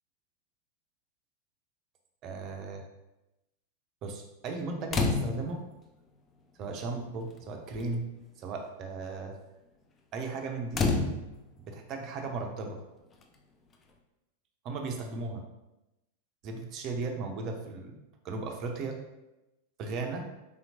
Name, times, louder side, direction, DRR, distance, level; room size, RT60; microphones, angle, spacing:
voice 1, 2.2-2.8 4.0-5.6 6.6-8.1 8.4-9.4 10.1-10.9 11.6-12.8 14.6-15.4 16.4-18.0 18.2-19.0 19.8-20.3, right 3 dB, 35° right, 3 dB, 0.5 m, -36 dB
sound 1, 4.9-5.6 6.7-6.8 7.1-7.5 7.7-8.0 10.7-11.6 13.2-13.3, left 3 dB, 25° left, 0.4 m, -29 dB
3.4 x 2.8 x 2.7 m, 0.97 s
figure-of-eight pair, 90°, 0 cm